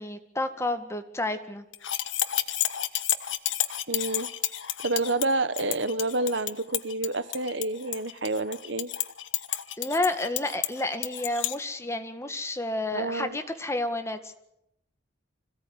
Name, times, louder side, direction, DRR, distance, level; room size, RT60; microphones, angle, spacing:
voice 1, 0.0-1.6 9.8-14.4, left 2 dB, 15° left, 8 dB, 1.9 m, -30 dB
sound 1, 1.7-11.5, left 12 dB, 85° left, 1.4 m, -31 dB
voice 2, 3.9-4.3 4.8-8.9 12.9-13.4, right 2 dB, 75° right, 14 dB, 1.3 m, -28 dB
26.0 x 17.0 x 9.8 m, 0.80 s
head